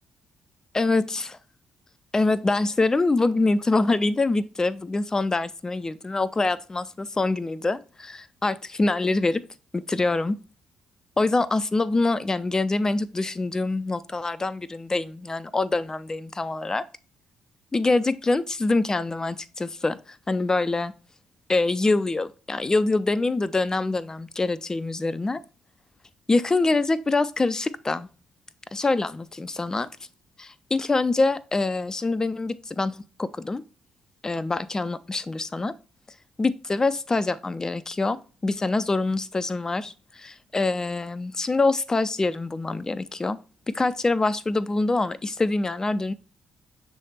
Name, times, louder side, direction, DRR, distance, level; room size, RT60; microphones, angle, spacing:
voice 1, 0.7-1.3 2.1-9.4 9.7-10.4 11.2-16.8 17.7-20.9 21.5-25.4 26.3-28.1 28.7-29.9 30.4-33.6 34.2-35.7 36.4-43.4 43.7-46.1, left 3 dB, 25° left, 0.5 m, -25 dB
6.9 x 3.3 x 4.2 m
hypercardioid pair, 45°, 3 cm